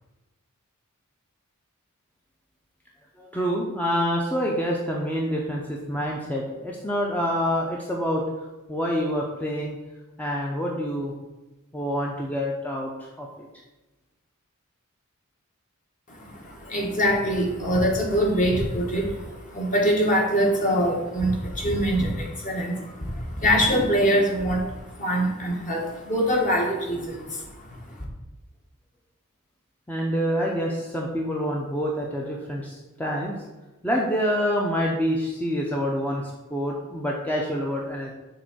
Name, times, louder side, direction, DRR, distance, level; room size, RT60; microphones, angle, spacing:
voice 1, 3.2-9.8 10.2-11.1 11.7-13.5 29.9-33.4 33.8-38.1, equal, 5° left, -2 dB, 0.7 m, -27 dB
voice 2, 16.1-28.0, equal, 35° left, -1 dB, 1.6 m, -24 dB
6.6 x 3.8 x 6.2 m, 1.1 s
head